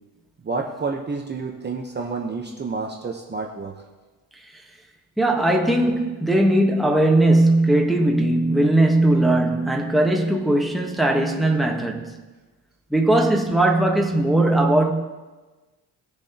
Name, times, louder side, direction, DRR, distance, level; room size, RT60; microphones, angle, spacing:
voice 1, 0.4-3.7, right 4 dB, 25° right, 0.8 m, -29 dB
voice 2, 5.2-12.1 12.9-14.9, right 1 dB, ahead, 1.1 m, -19 dB
19.5 x 7.0 x 2.8 m
cardioid pair, 130°, 41 cm